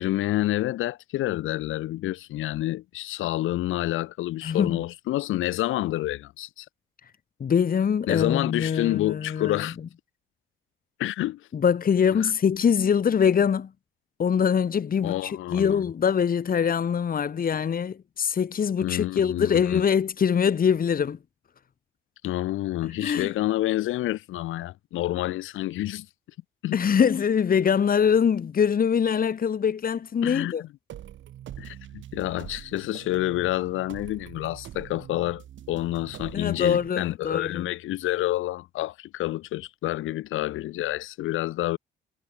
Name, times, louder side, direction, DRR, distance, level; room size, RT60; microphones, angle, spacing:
voice 1, 0.0-6.6 8.1-9.8 11.0-11.5 15.0-15.8 18.8-19.8 22.2-26.1 26.6-26.8 30.2-30.7 31.6-41.8, left 15 dB, 90° left, 4.9 m, -28 dB
voice 2, 4.4-4.8 7.4-9.6 11.5-13.7 14.2-21.2 22.8-23.3 26.7-30.6 36.3-37.7, left 7 dB, 45° left, 2.3 m, -23 dB
sound 1, 30.9-36.9, right 11 dB, 70° right, 5.9 m, -44 dB
cardioid pair, 90°, 20 cm